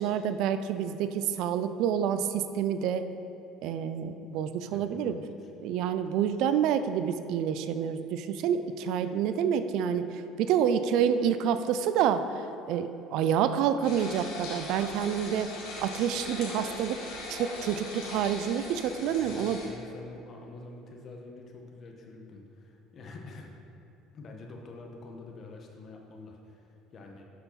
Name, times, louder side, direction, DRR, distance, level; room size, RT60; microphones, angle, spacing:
voice 1, 0.0-3.0 3.6-5.2 5.6-15.5 15.8-17.0 17.3-19.6, right 8 dB, 65° right, 11 dB, 0.4 m, -28 dB
voice 2, 4.7-5.1 5.4-5.5 19.0-23.5 24.1-27.2, left 3 dB, 45° left, 1 dB, 1.5 m, -47 dB
sound 1, 13.8-19.7, left 2 dB, 75° left, 2.0 m, -40 dB
11.5 x 5.7 x 4.2 m, 2.8 s
hypercardioid pair, 75°, 0 cm